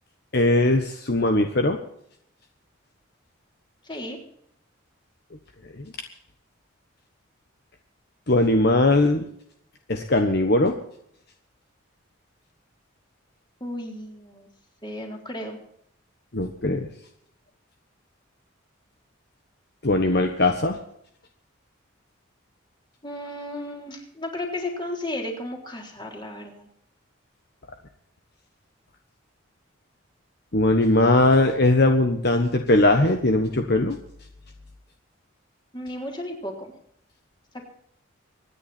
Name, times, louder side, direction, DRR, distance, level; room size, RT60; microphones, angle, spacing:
voice 1, 0.3-1.8 5.8-5.9 8.3-9.2 9.9-10.8 16.3-16.9 19.8-20.8 30.5-34.0, left 2 dB, 50° left, 5 dB, 1.3 m, -20 dB
voice 2, 3.8-4.2 13.6-14.5 14.8-15.6 23.0-26.7 35.7-36.7, left 1 dB, 20° left, 1 dB, 3.8 m, -34 dB
24.5 x 10.0 x 4.4 m, 0.69 s
head